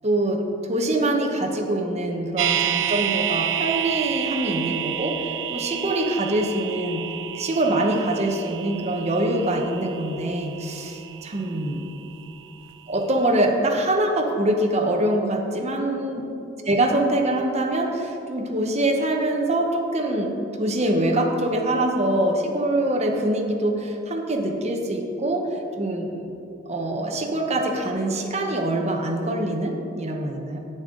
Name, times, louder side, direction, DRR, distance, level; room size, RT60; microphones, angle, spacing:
voice 1, 0.0-0.4 0.7-5.2 5.5-7.0 7.3-11.8 12.9-16.2 16.7-25.5 25.8-26.3 26.7-30.6, right 1 dB, 35° right, 2 dB, 0.9 m, -24 dB
sound 1, 2.4-12.4 12.7-12.8, right 11 dB, 70° right, 0.4 m, -30 dB
10.5 x 8.0 x 3.8 m, 2.8 s
head